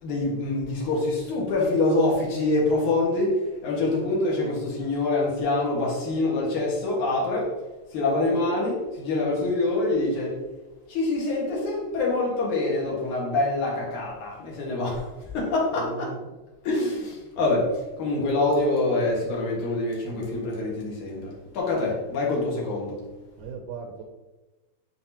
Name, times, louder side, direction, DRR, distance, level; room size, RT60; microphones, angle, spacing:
voice 1, 0.0-7.6 7.9-10.4 10.9-16.2 16.6-17.7 18.0-23.0, left 2 dB, 80° left, -3 dB, 3.1 m, -25 dB
voice 2, 15.8-16.3 23.4-24.0, right 6 dB, 85° right, 4 dB, 2.0 m, -38 dB
10.5 x 4.1 x 2.9 m, 1.1 s
omnidirectional pair, 3.4 m